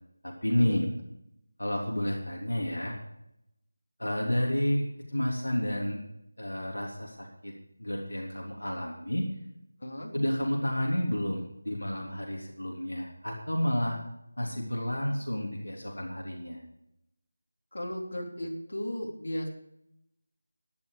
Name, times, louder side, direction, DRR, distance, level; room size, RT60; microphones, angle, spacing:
voice 1, 0.2-0.9 1.6-2.9 4.0-6.0 6.4-7.5 7.8-9.3 10.1-14.0 14.4-16.6, equal, 85° left, -1 dB, 3.3 m, -30 dB
voice 2, 9.8-10.1 17.7-19.5, equal, 65° left, -1 dB, 3.6 m, -35 dB
12.5 x 11.0 x 5.1 m, 0.80 s
figure-of-eight pair, 165°, 0 cm